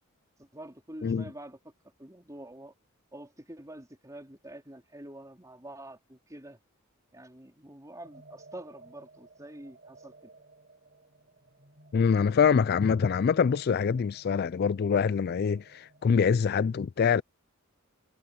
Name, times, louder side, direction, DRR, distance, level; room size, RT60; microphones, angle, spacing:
voice 1, 0.4-1.7 2.0-2.7 3.1-6.6 7.1-10.1 15.9-16.0, right 1 dB, 15° right, 3.9 m, -46 dB
sound 1, 8.0-16.3, right 3 dB, 45° right, 6.6 m, -56 dB
voice 2, 11.9-17.2, left 6 dB, 50° left, 0.3 m, -25 dB
head